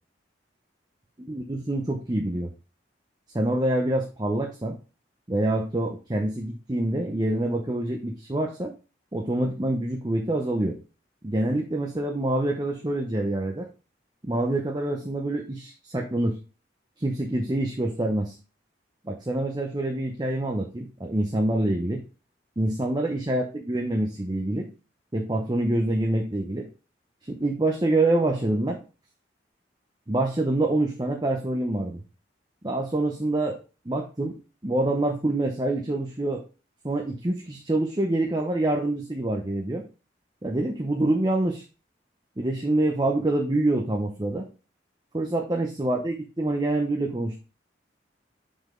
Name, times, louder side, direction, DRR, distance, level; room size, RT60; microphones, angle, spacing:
voice 1, 1.2-2.5 3.3-4.8 5.3-8.7 9.1-10.8 11.2-13.7 14.2-16.4 17.0-18.4 19.0-22.0 22.6-24.7 25.1-26.7 27.2-28.8 30.1-32.0 32.6-33.6 33.9-34.4 34.6-36.4 36.8-39.8 40.4-41.6 42.4-44.5 45.1-47.4, right 1 dB, 25° right, 1 dB, 0.7 m, -26 dB
5.7 x 5.3 x 3.7 m, 0.33 s
head